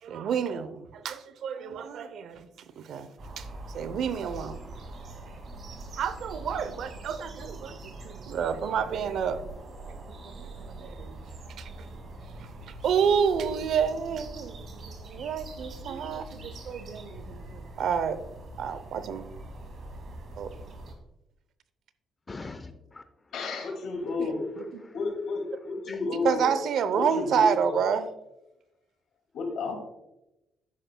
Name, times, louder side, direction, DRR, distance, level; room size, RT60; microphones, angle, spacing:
voice 1, 0.0-2.5 2.8-3.1 3.4-4.6 6.0-9.4 10.1-11.2 11.6-11.7 12.4-18.2 18.6-19.3 20.4-20.5 24.2-24.8 26.1-28.1, right 7 dB, 70° right, 13 dB, 0.6 m, -29 dB
sound 1, 3.2-20.9, right 2 dB, 55° right, 2.1 m, -43 dB
voice 2, 22.3-23.3 23.9-24.1 24.6-25.0 25.9-26.0, left 3 dB, 25° left, 8 dB, 0.7 m, -44 dB
voice 3, 23.3-24.6 24.9-26.6 27.0-27.8 29.3-29.7, left 3 dB, 75° left, 3 dB, 2.2 m, -31 dB
10.5 x 7.9 x 2.2 m, 0.93 s
cardioid pair, 90°, 0 cm